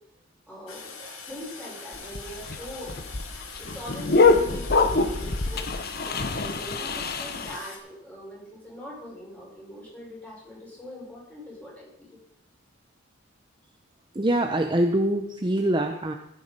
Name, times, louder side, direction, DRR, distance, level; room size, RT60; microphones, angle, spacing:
voice 1, 0.5-0.9 1.3-3.1 3.5-5.7 6.0-12.2, equal, 5° left, -6 dB, 6.2 m, -42 dB
Toilet flush, 0.7-7.8, left 4 dB, 80° left, 2.5 m, -42 dB
sound 1, 1.9-7.6, left 3 dB, 50° left, 1.0 m, -24 dB
voice 2, 14.1-16.1, right 1 dB, 25° right, 4 dB, 0.7 m, -24 dB
15.0 x 8.4 x 5.4 m, 0.79 s
head